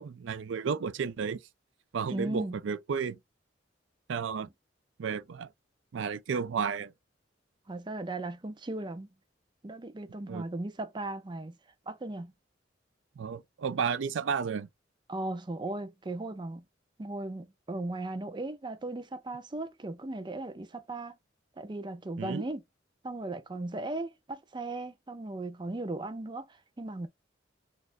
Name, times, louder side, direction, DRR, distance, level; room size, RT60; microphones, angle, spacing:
voice 1, 0.0-1.4 1.9-3.2 4.1-4.5 5.0-5.5 5.9-6.9 10.3-10.5 13.2-14.7 22.2-22.5, right 6 dB, 80° right, 0.4 m, -32 dB
voice 2, 2.1-2.6 7.7-9.1 9.6-11.6 11.9-12.3 15.1-16.6 17.0-21.2 21.6-22.6 23.0-27.1, right 2 dB, 25° right, 0.5 m, -37 dB
4.1 x 2.5 x 2.5 m
head